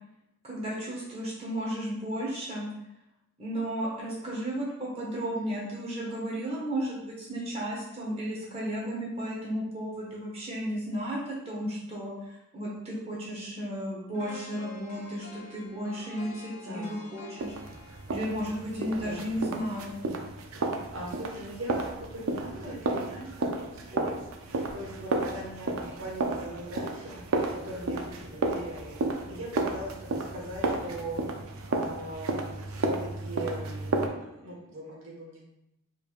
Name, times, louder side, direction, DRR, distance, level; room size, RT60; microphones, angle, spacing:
voice 1, 0.4-2.7 3.4-17.5 18.1-19.9, equal, 30° right, -5 dB, 0.9 m, -34 dB
sound 1, 14.1-20.2 20.5-20.7, left 1 dB, 70° left, 1.2 m, -49 dB
sound 2, 17.4-34.1, right 2 dB, 80° right, 0.5 m, -32 dB
voice 2, 18.9-19.4 20.9-24.5 24.7-27.2 27.6-28.9 29.3-31.2 31.7-35.4, right 1 dB, 65° right, -4 dB, 1.4 m, -40 dB
5.1 x 3.2 x 2.4 m, 0.85 s
head